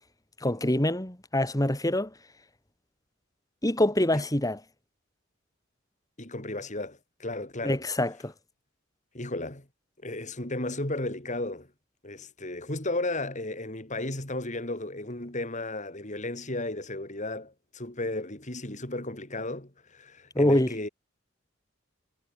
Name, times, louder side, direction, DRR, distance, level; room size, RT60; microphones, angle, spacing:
voice 1, 0.4-2.1 3.6-4.6 7.6-8.3 20.3-20.7, left 1 dB, 20° left, 2.5 m, -25 dB
voice 2, 6.2-7.8 9.1-9.7 10.0-11.7 12.0-20.9, left 2 dB, 40° left, 4.5 m, -34 dB
head